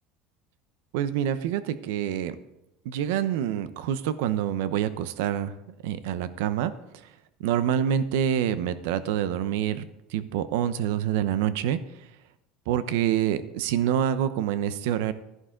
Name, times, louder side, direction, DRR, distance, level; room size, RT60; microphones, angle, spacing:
voice 1, 0.9-2.4 2.8-5.5 5.8-7.1 7.4-9.8 10.1-11.8 12.7-15.1, right 10 dB, 80° right, 13 dB, 0.8 m, -26 dB
14.0 x 11.0 x 3.8 m, 0.89 s
cardioid pair, 140°, 0 cm